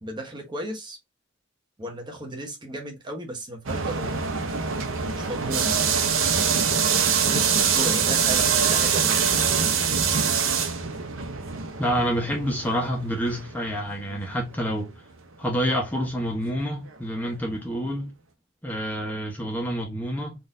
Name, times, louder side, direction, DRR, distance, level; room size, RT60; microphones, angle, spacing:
voice 1, 0.0-1.0 1.8-4.3 5.2-5.8 7.1-9.3, right 1 dB, 25° right, 0.9 m, -35 dB
sound 1, 3.7-14.6 14.8-14.9 15.7-15.8 17.3-17.4, right 6 dB, 80° right, 0.7 m, -24 dB
voice 2, 11.8-14.9 15.4-18.1 18.6-20.4, equal, 10° left, 0.8 m, -28 dB
3.8 x 2.6 x 2.5 m
head